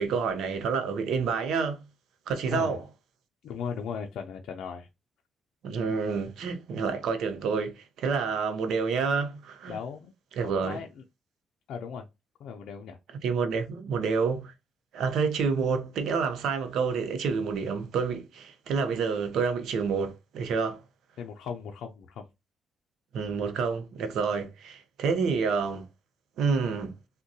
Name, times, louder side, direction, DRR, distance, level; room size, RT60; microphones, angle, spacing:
voice 1, 0.0-1.8 2.3-2.8 5.6-9.8 10.4-10.8 13.2-14.5 14.9-20.8 23.1-25.8 26.4-26.9, right 5 dB, 75° right, 0.6 m, -28 dB
voice 2, 3.4-4.9 9.7-11.0 11.7-12.1 12.4-13.0 21.2-22.2, left 6 dB, 75° left, 0.4 m, -37 dB
3.5 x 2.2 x 2.6 m
cardioid pair, 90°, 0 cm